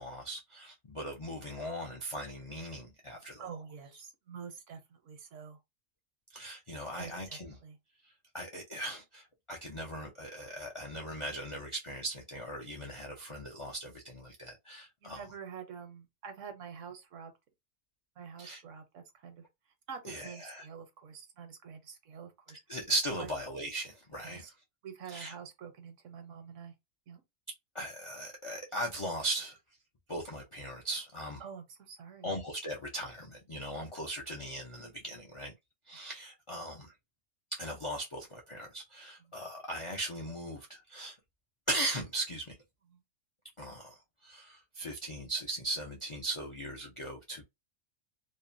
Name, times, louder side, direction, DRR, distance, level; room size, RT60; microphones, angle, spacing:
voice 1, 0.0-3.4 6.3-7.6 8.3-15.2 18.4-18.6 20.0-20.7 22.5-24.5 25.1-25.3 27.7-29.6 30.1-31.4 32.2-35.5 35.9-36.9 37.5-41.2 41.7-42.6 43.6-47.4, right 1 dB, 50° left, 0.3 m, -38 dB
voice 2, 3.4-5.6 7.0-7.8 15.0-17.3 18.2-19.5 19.9-22.6 23.2-23.3 24.2-24.5 24.8-26.7 27.1-27.2 31.4-32.3 39.2-39.3 42.9-43.0, right 7 dB, 75° right, 1.1 m, -47 dB
2.7 x 2.1 x 2.5 m
omnidirectional pair, 1.3 m